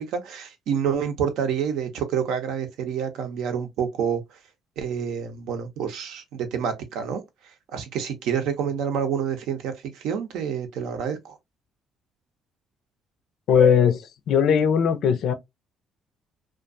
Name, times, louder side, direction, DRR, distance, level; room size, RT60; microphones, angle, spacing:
voice 1, 0.0-4.4 4.8-11.4, right 7 dB, 80° right, 0.6 m, -28 dB
voice 2, 13.5-15.3, left 7 dB, 70° left, 0.4 m, -19 dB
2.4 x 2.2 x 2.5 m
supercardioid pair, 75°, 0 cm